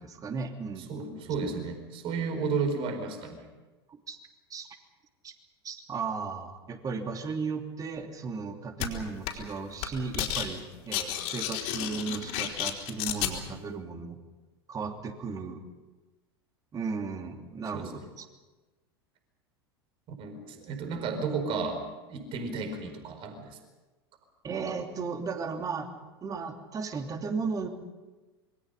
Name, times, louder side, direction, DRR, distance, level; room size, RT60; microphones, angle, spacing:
voice 1, 0.0-0.9 4.1-4.2 4.5-4.7 5.2-5.3 5.6-14.2 14.7-15.6 16.7-18.2 24.4-25.9 26.2-27.7, right 5 dB, 25° right, 4 dB, 3.0 m, -35 dB
voice 2, 0.9-3.4 17.7-17.9 20.2-21.8 22.1-23.6, right 4 dB, 45° right, 6 dB, 4.6 m, -33 dB
sound 1, 8.8-8.9 9.3-9.5 9.8-10.5 10.7-13.3, left 11 dB, 55° left, 4.2 m, -31 dB
26.5 x 23.0 x 5.6 m, 1.2 s
figure-of-eight pair, 85°, 13 cm